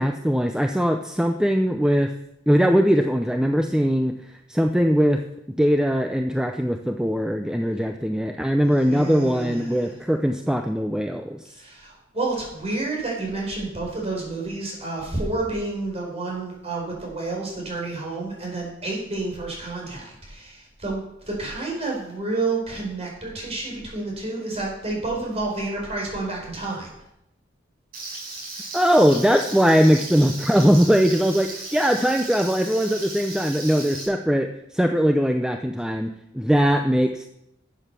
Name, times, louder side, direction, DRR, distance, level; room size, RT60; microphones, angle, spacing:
voice 1, 0.0-2.1 2.5-4.1 4.5-5.2 5.6-11.4 28.7-37.3, equal, 5° right, 5 dB, 0.6 m, -20 dB
voice 2, 8.6-9.9 11.5-26.9, right 3 dB, 35° right, -1 dB, 4.5 m, -30 dB
Frying (food), 27.9-34.0, right 2 dB, 50° right, 5.6 m, -36 dB
12.0 x 8.0 x 6.8 m, 0.81 s
head